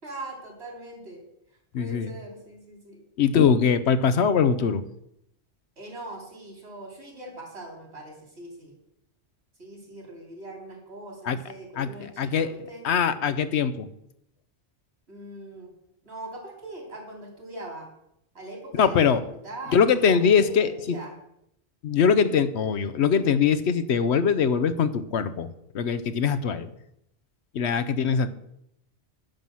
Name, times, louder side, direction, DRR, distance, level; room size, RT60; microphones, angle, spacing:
voice 1, 0.0-1.2 1.8-3.0 5.8-8.8 9.6-12.8 15.1-15.7 16.0-17.9 18.3-21.2, right 1 dB, 75° right, 1 dB, 3.4 m, -41 dB
voice 2, 1.7-2.1 3.2-4.8 11.3-11.4 11.8-11.9 12.2-12.5 12.8-13.9 18.8-19.2 19.7-21.0 21.8-25.5 25.7-26.7 27.5-28.3, left 6 dB, 80° left, 13 dB, 1.0 m, -22 dB
10.5 x 5.6 x 7.6 m, 0.78 s
omnidirectional pair, 1.1 m